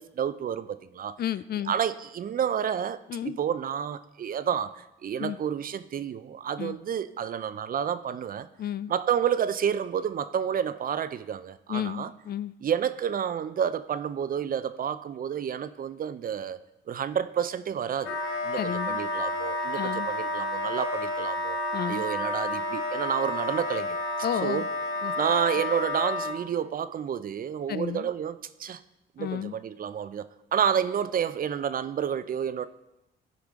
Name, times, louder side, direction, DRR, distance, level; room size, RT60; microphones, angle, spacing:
voice 1, 0.0-1.2 1.7-3.0 3.2-8.5 8.9-12.1 12.6-16.6 16.9-18.2 18.4-18.6 18.9-21.6 21.8-24.0 24.4-24.6 25.2-28.8 29.2-30.3 30.5-32.7, right 8 dB, 45° right, 13 dB, 0.5 m, -30 dB
voice 2, 1.2-1.7 3.1-3.4 5.2-5.4 6.6-6.8 8.6-8.9 11.7-12.5 18.6-19.0 19.8-20.1 21.7-22.0 24.2-24.7 25.0-25.1 27.7-28.1 29.2-29.5, left 10 dB, 50° left, 16 dB, 0.4 m, -32 dB
Wind instrument woodwind instrument, 18.0-26.4, left 2 dB, 75° left, 1.3 m, -30 dB
14.5 x 4.9 x 3.6 m, 0.92 s
cardioid pair, 85°, 20 cm